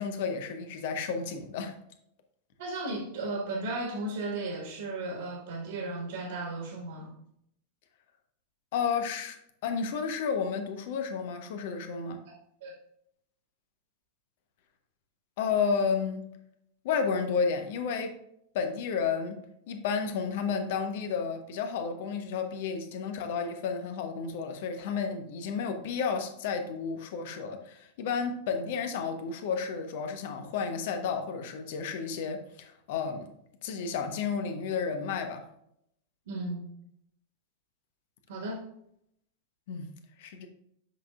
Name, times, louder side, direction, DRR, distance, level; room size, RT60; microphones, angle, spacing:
voice 1, 0.0-1.7 8.7-12.2 15.4-16.3 16.8-18.1 18.5-19.4 19.7-33.3 33.6-35.4 39.7-39.9 40.2-40.5, left 6 dB, 50° left, 7 dB, 1.0 m, -32 dB
voice 2, 2.6-7.2 12.3-12.4 12.6-12.7 36.3-36.7 38.3-38.6, right 2 dB, 60° right, 1 dB, 1.6 m, -35 dB
7.9 x 6.1 x 2.4 m, 0.74 s
figure-of-eight pair, 90°, 0 cm